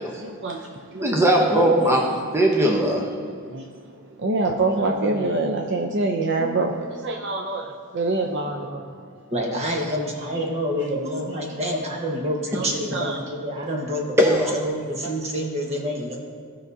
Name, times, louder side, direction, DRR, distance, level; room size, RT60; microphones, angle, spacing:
voice 1, 0.1-1.2 3.4-8.8 10.8-11.2 11.7-11.8 12.5-13.2 15.0-15.1, right 2 dB, 55° right, 3 dB, 0.6 m, -26 dB
voice 2, 1.0-2.0 2.3-3.1 14.2-14.5, equal, 10° right, -1 dB, 0.8 m, -19 dB
voice 3, 1.5-2.0 8.4-8.5 9.3-16.2, equal, 30° right, 0 dB, 1.2 m, -27 dB
15.5 x 5.8 x 2.7 m, 2.1 s
head